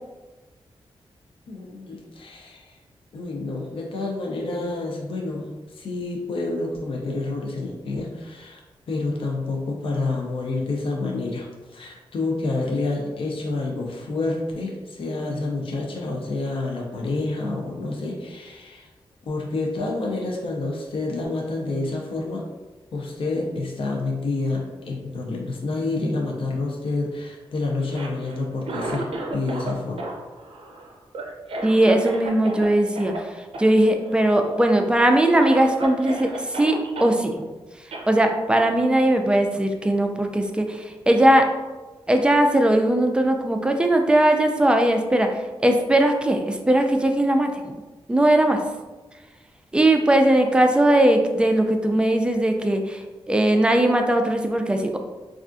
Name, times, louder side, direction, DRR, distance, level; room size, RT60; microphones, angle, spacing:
voice 1, 1.5-2.8 3.1-8.6 8.9-18.9 19.2-22.4 22.9-30.0, left 3 dB, 60° left, -1 dB, 0.5 m, -28 dB
Cough, 27.8-29.7 30.0-32.7 33.0-33.2 33.5-33.7 34.0-34.5 35.0-35.1 35.4-37.1 37.9-38.1, right 2 dB, 70° right, 0.5 m, -33 dB
voice 2, 31.6-37.5 38.1-41.4 42.1-47.8 48.1-48.6 49.7-55.0, right 1 dB, 10° right, 4 dB, 0.3 m, -19 dB
3.4 x 2.4 x 2.5 m, 1.2 s
wide cardioid pair, 105°, 10 cm